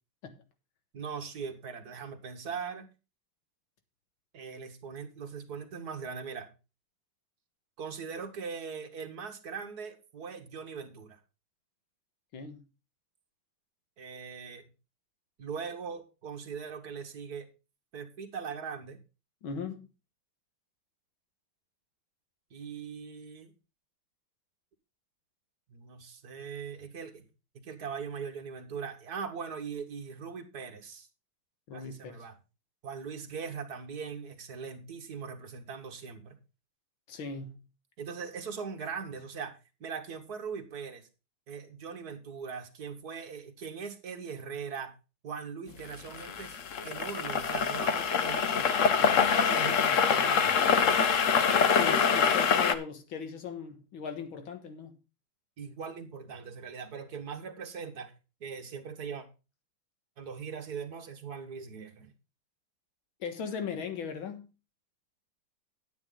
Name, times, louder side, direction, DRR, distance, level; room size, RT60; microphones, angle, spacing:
voice 1, 0.9-2.9 4.3-6.5 7.8-11.2 14.0-14.6 15.4-17.5 17.9-19.0 22.5-23.5 25.7-27.3 27.5-31.1 31.7-32.4 32.8-36.4 38.0-41.1 41.5-44.9 45.2-46.6 46.8-48.7 49.0-50.6 55.6-58.1 58.4-59.3 60.2-62.1, right 6 dB, 55° right, 2.0 m, -40 dB
voice 2, 12.3-12.6 19.4-19.9 31.7-32.3 37.1-37.6 51.7-55.0 63.2-64.5, left 6 dB, 90° left, 2.2 m, -38 dB
sound 1, 45.9-52.7, left 6 dB, 55° left, 0.9 m, -25 dB
10.0 x 9.3 x 3.8 m
omnidirectional pair, 2.1 m